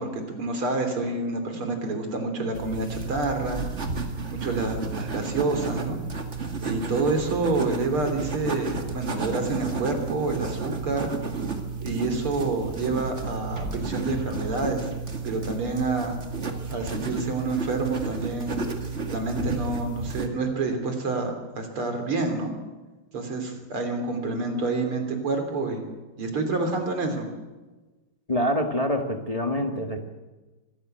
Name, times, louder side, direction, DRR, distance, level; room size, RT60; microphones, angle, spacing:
voice 1, 0.0-3.6 4.3-6.0 6.6-11.1 11.8-14.9 15.2-16.2 16.7-18.6 19.1-22.5 23.1-25.9 26.2-27.3, right 3 dB, 90° right, 5 dB, 4.2 m, -28 dB
sound 1, 2.5-20.3, right 4 dB, 35° right, 2.2 m, -32 dB
voice 2, 28.3-30.1, equal, 20° left, 4 dB, 1.5 m, -26 dB
24.5 x 15.5 x 8.0 m, 1.2 s
omnidirectional pair, 2.3 m